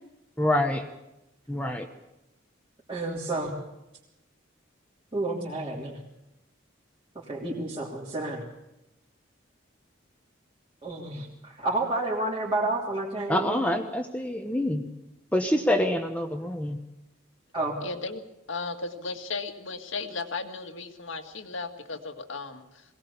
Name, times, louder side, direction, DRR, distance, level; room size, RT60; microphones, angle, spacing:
voice 1, 0.4-0.8 1.5-1.9 13.3-14.8 15.3-16.8, left 1 dB, 5° left, 4 dB, 1.0 m, -26 dB
voice 2, 2.9-3.6 5.1-6.0 7.3-8.4 10.8-13.7 17.5-17.7, right 2 dB, 25° right, -6 dB, 3.0 m, -30 dB
voice 3, 17.8-18.2 18.5-22.6, left 4 dB, 70° left, 6 dB, 1.9 m, -35 dB
22.0 x 18.5 x 7.1 m, 0.93 s
head